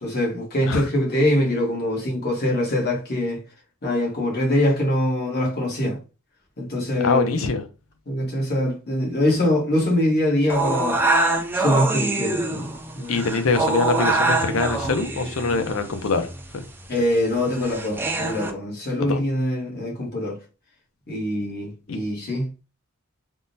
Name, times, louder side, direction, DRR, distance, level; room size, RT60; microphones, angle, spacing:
voice 1, 0.0-3.4 3.8-6.0 6.6-7.5 8.1-11.0 11.5-12.7 13.0-13.2 16.9-20.4 21.1-22.5, left 1 dB, 45° left, 1.1 m, -23 dB
voice 2, 7.0-7.6 13.1-16.6 19.0-19.2 21.9-22.0, left 4 dB, 65° left, 0.5 m, -24 dB
sound 1, 10.5-18.5, right 2 dB, 10° right, 0.3 m, -25 dB
3.5 x 2.1 x 2.6 m
head